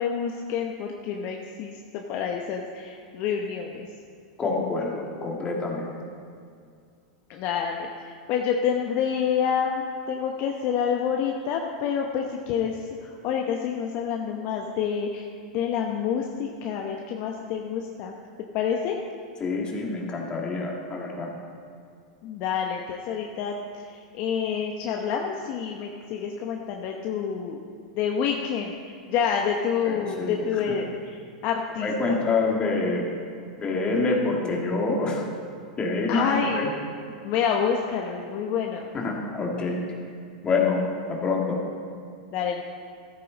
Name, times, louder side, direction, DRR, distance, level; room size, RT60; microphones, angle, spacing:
voice 1, 0.0-3.9 7.3-15.3 15.5-18.1 18.5-19.0 22.2-27.6 27.9-28.8 29.1-32.2 36.1-36.7 37.2-38.9 42.3-42.6, left 7 dB, 50° left, 1 dB, 0.9 m, -28 dB
voice 2, 4.4-5.9 19.4-21.3 29.8-30.4 31.8-33.0 33.6-35.2 35.8-36.7 38.9-39.8 40.4-40.8 41.1-41.6, left 3 dB, 25° left, -1 dB, 2.3 m, -26 dB
14.0 x 8.8 x 4.1 m, 2.3 s
hypercardioid pair, 115°, 4 cm